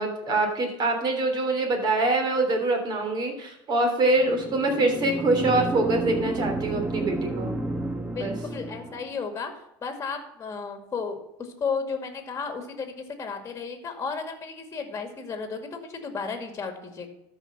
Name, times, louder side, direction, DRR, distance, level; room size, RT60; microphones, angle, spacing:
voice 1, 0.0-7.6 8.2-8.3, right 2 dB, 35° right, 4 dB, 3.2 m, -24 dB
sound 1, 4.2-9.1, right 1 dB, 10° right, 1.1 m, -31 dB
voice 2, 8.1-9.5 9.8-17.1, left 5 dB, 25° left, 5 dB, 2.1 m, -33 dB
13.0 x 5.4 x 5.9 m, 0.84 s
supercardioid pair, 120°, 12 cm